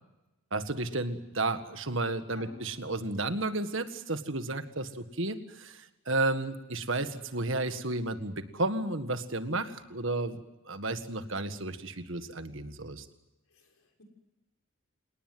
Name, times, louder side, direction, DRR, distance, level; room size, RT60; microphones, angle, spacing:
voice 1, 0.5-5.8 6.1-13.1, right 2 dB, 60° right, 9 dB, 1.8 m, -32 dB
voice 2, 13.5-14.0, left 2 dB, 85° left, 3 dB, 6.4 m, -52 dB
28.5 x 19.0 x 7.8 m, 1.0 s
head